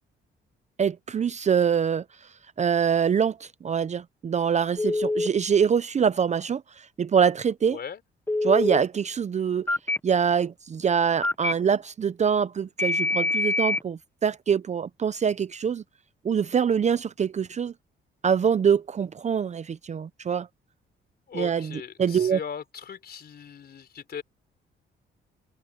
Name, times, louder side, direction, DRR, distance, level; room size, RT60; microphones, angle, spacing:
voice 1, 0.8-2.0 2.6-6.6 7.0-7.8 8.4-9.7 10.0-15.8 16.2-17.7 18.2-20.5 21.3-22.4, right 7 dB, 35° right, 0.6 m, -24 dB
Telephone, 4.8-5.3 8.3-8.8 9.7-10.0 11.2-11.5 12.8-13.8, left 2 dB, 10° left, 1.1 m, -25 dB
voice 2, 7.6-8.0 21.3-24.2, left 7 dB, 55° left, 4.1 m, -38 dB
cardioid pair, 90°, 20 cm